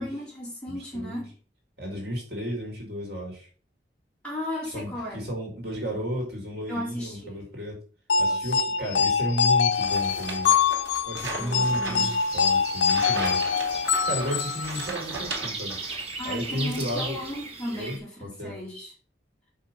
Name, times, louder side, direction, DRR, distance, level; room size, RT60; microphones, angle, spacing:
voice 1, 0.0-1.3 4.2-5.2 6.7-7.4 8.3-8.6 11.4-12.2 16.2-18.9, left 1 dB, 5° left, 3.9 m, -35 dB
voice 2, 0.7-1.2 1.8-3.5 4.6-7.8 8.2-10.5 11.1-13.4 14.0-15.8 16.3-17.2 17.7-18.0 18.2-18.6, equal, 60° right, 3.6 m, -33 dB
sound 1, 8.1-15.0, left 5 dB, 85° left, 0.6 m, -24 dB
sound 2, 9.7-16.1 16.4-17.4, right 3 dB, 85° right, 2.5 m, -38 dB
sound 3, 12.0-18.0, right 3 dB, 30° right, 1.5 m, -38 dB
6.6 x 5.8 x 5.5 m
head